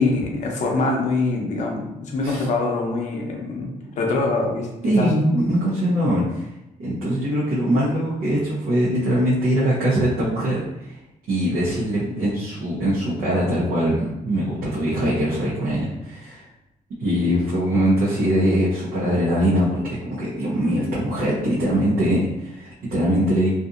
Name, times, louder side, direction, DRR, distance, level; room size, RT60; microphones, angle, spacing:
voice 1, 0.0-5.1, left 3 dB, 55° left, 0 dB, 0.6 m, -24 dB
voice 2, 4.8-6.5 6.8-11.0 11.3-16.5 17.0-23.5, equal, 85° right, -8 dB, 0.8 m, -22 dB
2.7 x 2.5 x 2.5 m, 0.90 s
cardioid pair, 160°, 15 cm